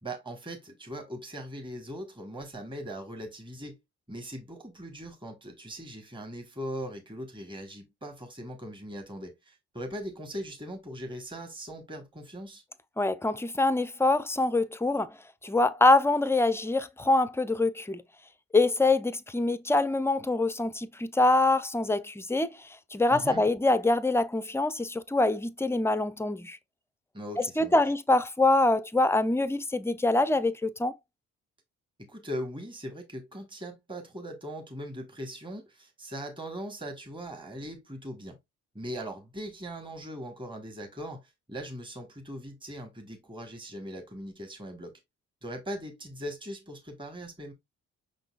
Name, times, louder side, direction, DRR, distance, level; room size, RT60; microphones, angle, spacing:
voice 1, 0.0-3.8 4.1-12.6 23.1-23.4 27.1-27.8 32.0-38.4 38.7-44.9 45.4-47.5, equal, 15° right, 1.3 m, -40 dB
voice 2, 13.0-15.1 15.4-18.0 18.5-26.6 27.4-31.0, left 2 dB, 10° left, 0.4 m, -25 dB
5.7 x 3.9 x 2.3 m
cardioid pair, 90°, 30 cm